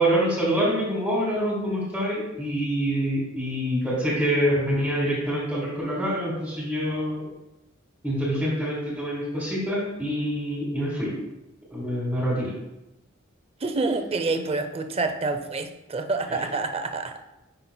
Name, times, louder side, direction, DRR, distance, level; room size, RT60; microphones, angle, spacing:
voice 1, 0.0-7.2 8.0-11.1 11.7-12.5, equal, 5° right, -6 dB, 1.4 m, -26 dB
voice 2, 13.6-17.2, right 3 dB, 30° right, 7 dB, 0.5 m, -27 dB
9.6 x 5.3 x 2.2 m, 0.96 s
head